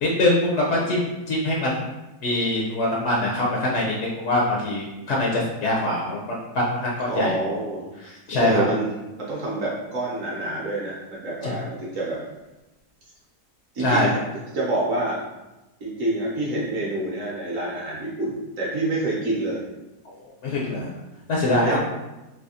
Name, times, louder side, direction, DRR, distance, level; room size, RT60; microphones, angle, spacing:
voice 1, 0.0-1.8 2.2-7.3 8.3-8.6 11.4-11.5 13.8-14.1 20.0-20.1 20.4-20.9 21.3-21.8, left 1 dB, 70° left, -3 dB, 0.6 m, -23 dB
voice 2, 7.1-7.8 8.4-12.2 13.7-14.1 14.5-15.2 15.8-19.7 20.6-20.8 21.6-21.8, right 2 dB, 60° right, -6 dB, 1.0 m, -27 dB
3.4 x 2.7 x 2.7 m, 1.0 s
omnidirectional pair, 1.8 m